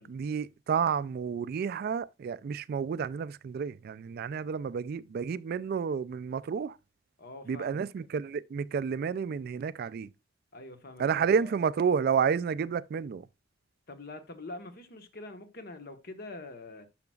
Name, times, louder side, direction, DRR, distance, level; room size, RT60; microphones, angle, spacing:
voice 1, 0.0-6.8 7.5-10.1 11.0-13.3, right 6 dB, 50° right, 0.3 m, -30 dB
voice 2, 7.2-7.9 10.5-11.5 13.9-16.9, left 2 dB, 55° left, 1.2 m, -45 dB
10.5 x 5.9 x 2.3 m
head